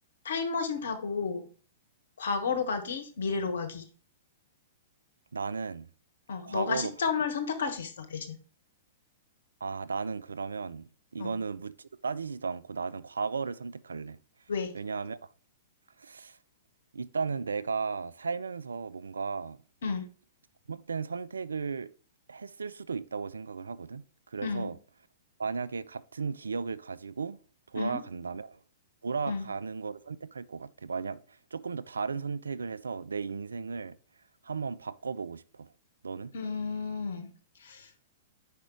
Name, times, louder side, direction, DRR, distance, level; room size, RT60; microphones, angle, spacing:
voice 1, 0.2-1.5 2.2-3.8 6.3-8.4 11.2-11.3 14.5-14.7 19.8-20.1 24.4-24.7 27.8-28.0 29.3-29.4 36.3-37.3 37.6-37.9, left 5 dB, 70° left, 1.1 m, -32 dB
voice 2, 5.3-5.9 6.5-6.9 9.6-14.2 14.7-15.2 16.0-16.4 16.9-19.6 20.7-21.9 22.3-24.0 24.3-24.8 25.4-27.4 27.7-28.6 29.0-34.0 34.4-35.7 36.0-36.3, right 5 dB, 80° right, 0.3 m, -35 dB
5.0 x 5.0 x 4.6 m
figure-of-eight pair, 110°, 0 cm